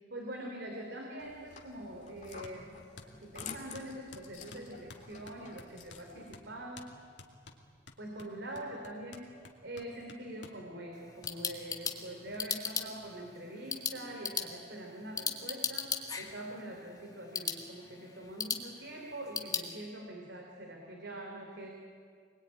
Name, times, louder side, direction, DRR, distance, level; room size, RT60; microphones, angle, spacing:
voice 1, 0.1-6.9 8.0-9.3 9.6-15.9 16.2-21.7, right 1 dB, 70° right, 1 dB, 3.2 m, -44 dB
sound 1, 1.2-6.4, left 5 dB, 40° left, 2.7 m, -50 dB
sound 2, 2.4-2.6 3.0-6.1 6.3-6.5 6.8-6.9 7.2-10.6 11.2-11.4 11.9-12.0 12.3-12.4 12.7-12.8 13.0-13.8, left 3 dB, 85° left, 2.5 m, -53 dB
sound 3, 10.9-19.7, left 5 dB, 20° left, 1.9 m, -39 dB
25.5 x 21.0 x 9.7 m, 2.2 s
head